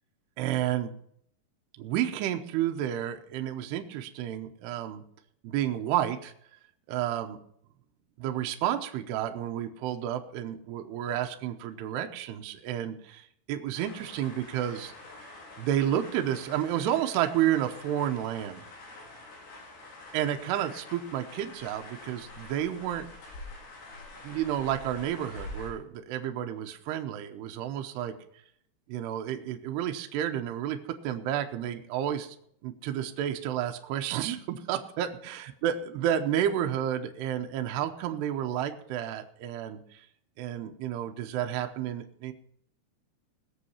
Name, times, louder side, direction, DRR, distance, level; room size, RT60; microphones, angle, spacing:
voice 1, 0.4-0.9 1.8-5.0 5.4-6.3 6.9-7.4 8.2-14.9 15.6-18.6 20.1-23.1 24.2-28.1 28.9-32.4 32.6-40.1 40.4-42.3, right 11 dB, 75° right, 5 dB, 2.9 m, -31 dB
sound 1, 13.7-25.7, left 2 dB, 70° left, 5.9 m, -46 dB
19.5 x 7.5 x 5.6 m, 0.66 s
omnidirectional pair, 5.1 m